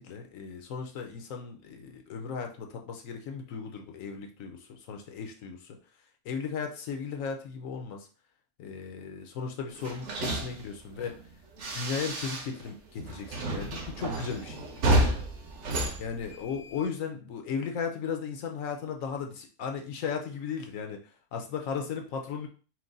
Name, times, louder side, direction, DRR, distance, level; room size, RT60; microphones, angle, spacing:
voice 1, 0.0-5.8 6.2-8.1 8.6-11.2 11.7-14.7 16.0-21.0 21.3-22.5, left 6 dB, 70° left, 4 dB, 1.0 m, -36 dB
sound 1, 9.8-12.7 13.0-16.8, right 1 dB, 55° right, 1.0 m, -31 dB
4.5 x 2.2 x 3.8 m, 0.38 s
omnidirectional pair, 1.5 m